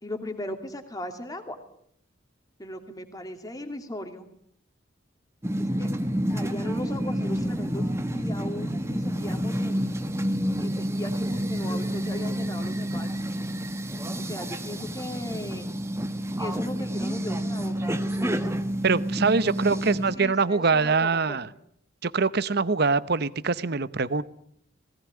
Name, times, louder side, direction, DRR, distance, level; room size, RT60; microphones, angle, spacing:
voice 1, 0.0-1.6 2.6-4.3 5.8-5.9 6.3-10.0 10.6-13.2 14.2-15.7 16.4-18.5 19.5-21.4, left 1 dB, 20° left, 5 dB, 2.6 m, -38 dB
sound 1, 5.4-20.1, equal, 15° right, 1.4 m, -29 dB
voice 2, 18.8-21.5 22.0-24.2, right 4 dB, 55° right, 17 dB, 0.8 m, -24 dB
19.0 x 17.5 x 9.6 m, 0.67 s
head